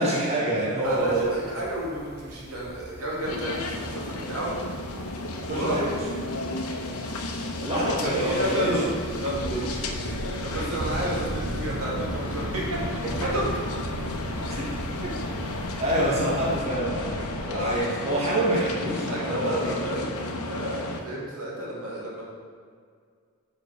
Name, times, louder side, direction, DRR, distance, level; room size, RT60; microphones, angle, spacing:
voice 1, 0.0-1.4 5.5-6.0 7.6-8.8 9.5-9.7 10.0-10.2 14.5-14.7 15.0-15.1 15.8-19.8, right 1 dB, 30° right, -5 dB, 1.4 m, -26 dB
sound 1, 0.8-16.6, right 1 dB, 45° right, 0.6 m, -39 dB
voice 2, 0.8-4.5 5.5-5.9 7.6-8.8 9.2-9.4 10.3-12.8 13.2-13.5 17.5-17.8 19.1-22.2, equal, 75° right, -5 dB, 2.1 m, -31 dB
sound 2, 3.2-21.0, left 2 dB, 75° left, 0.8 m, -33 dB
sound 3, 10.8-17.8, left 2 dB, 40° left, 0.5 m, -39 dB
6.0 x 5.1 x 6.4 m, 2.1 s
head